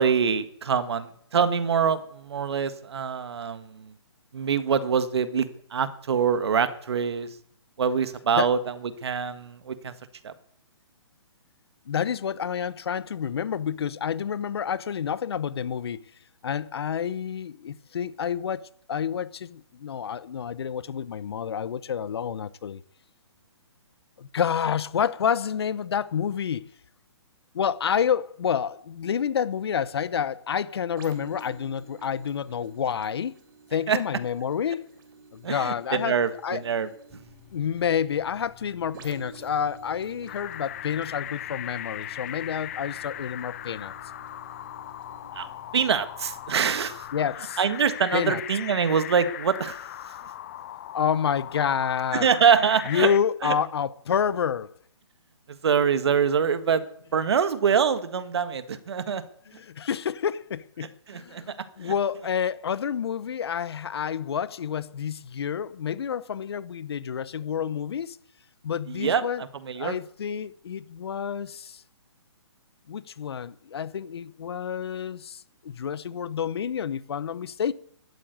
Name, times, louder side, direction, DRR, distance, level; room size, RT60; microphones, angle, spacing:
voice 1, 0.0-3.9 4.3-7.3 7.8-8.7 9.0-9.9 10.2-10.3 33.9-34.0 35.4-36.9 45.3-45.5 45.7-47.0 47.6-49.8 52.1-53.1 53.4-53.5 55.5-56.8 57.1-59.2 61.1-61.6 61.8-61.9 68.9-70.0, right 6 dB, 65° right, 1.7 m, -25 dB
voice 2, 11.9-16.0 16.4-22.8 24.2-26.7 27.5-33.3 33.7-34.9 35.3-36.2 36.4-36.6 37.5-43.9 47.1-47.6 48.1-48.4 50.9-52.3 52.9-54.7 59.5-68.2 68.6-69.4 69.8-71.8 72.9-77.7, left 8 dB, 60° left, 0.9 m, -29 dB
sound 1, 31.0-48.5 49.0-49.2, right 4 dB, 50° right, 3.5 m, -52 dB
sound 2, 37.1-47.2, left 8 dB, ahead, 3.4 m, -54 dB
sound 3, 40.3-53.2, left 12 dB, 30° left, 0.5 m, -39 dB
12.0 x 11.5 x 9.3 m
hypercardioid pair, 160°, 15 cm